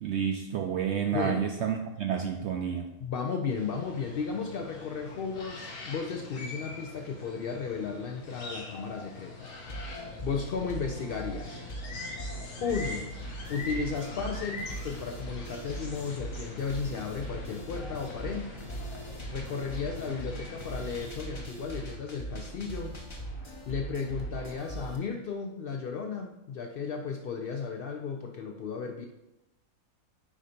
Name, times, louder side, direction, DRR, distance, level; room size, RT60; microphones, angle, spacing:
voice 1, 0.0-2.8, right 8 dB, 65° right, 4 dB, 0.7 m, -30 dB
voice 2, 1.1-1.4 3.0-9.5 10.2-11.6 12.6-13.1 13.5-18.6 19.3-23.0 23.7-29.1, left 5 dB, 80° left, 3 dB, 0.5 m, -34 dB
sound 1, 3.5-21.1, left 3 dB, 65° left, 1.5 m, -44 dB
sound 2, 9.5-25.0, right 2 dB, 25° left, 0.7 m, -40 dB
8.2 x 2.8 x 5.0 m, 0.92 s
omnidirectional pair, 1.5 m